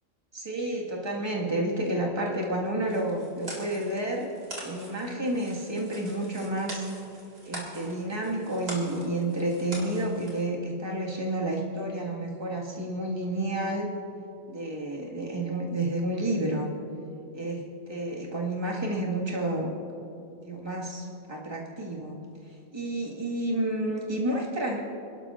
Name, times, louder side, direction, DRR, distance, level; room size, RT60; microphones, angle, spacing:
voice 1, 0.3-4.3 4.6-6.9 7.4-13.9 14.5-16.7 17.3-19.8 20.4-22.2 22.7-24.8, right 1 dB, 20° right, -3 dB, 1.9 m, -30 dB
sound 1, 2.8-10.4, right 1 dB, 80° right, 3.4 m, -43 dB
28.5 x 12.0 x 2.5 m, 2.7 s
omnidirectional pair, 1.3 m